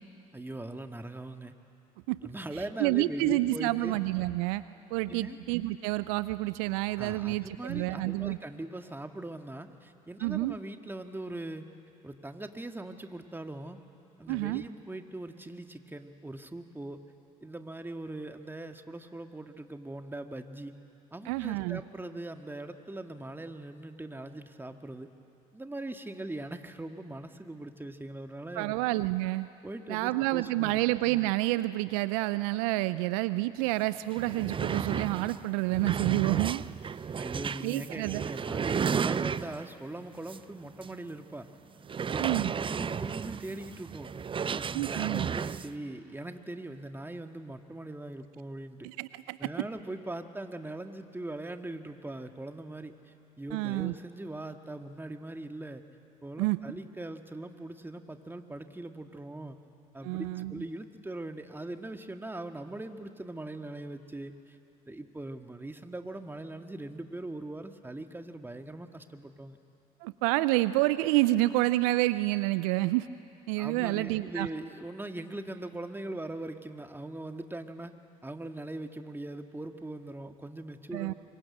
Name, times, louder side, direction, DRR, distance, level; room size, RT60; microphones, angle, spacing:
voice 1, 0.3-1.5 2.2-3.9 5.1-5.4 7.0-11.7 12.0-13.8 14.2-17.0 17.4-20.7 21.1-25.1 25.5-28.8 29.6-30.8 37.2-41.5 42.0-44.1 44.5-48.9 49.4-55.8 56.2-59.6 59.9-64.6 64.9-69.6 73.6-77.9 78.2-81.1, right 2 dB, 10° right, 6 dB, 1.8 m, -41 dB
voice 2, 2.8-4.6 4.9-8.4 10.2-10.5 14.3-14.6 21.3-21.8 28.5-29.5 29.9-36.6 37.6-38.2 42.2-42.5 44.7-45.3 48.8-49.5 53.5-53.9 56.4-56.6 60.0-60.6 70.0-73.1 73.5-74.5 80.9-81.1, right 18 dB, 70° right, 15 dB, 0.5 m, -28 dB
sound 1, 33.7-33.8 34.1-39.8 40.3-40.4 40.8-40.9 41.8-45.7, right 6 dB, 25° right, 0.6 m, -33 dB
25.0 x 22.5 x 8.7 m, 2.7 s
hypercardioid pair, 55°, 19 cm